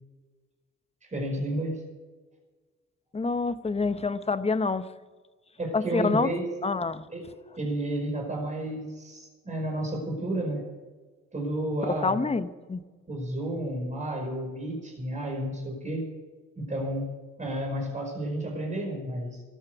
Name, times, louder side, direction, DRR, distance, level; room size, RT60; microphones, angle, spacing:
voice 1, 1.0-1.8 5.6-6.4 7.1-7.2 7.6-10.6 11.3-12.2 13.1-16.0 16.6-19.4, right 1 dB, 25° right, 1 dB, 5.0 m, -31 dB
voice 2, 3.1-4.8 5.7-6.3 6.6-7.1 11.8-12.8, left 4 dB, 20° left, 13 dB, 0.8 m, -27 dB
13.0 x 10.0 x 8.1 m, 1.4 s
cardioid pair, 90°, 30 cm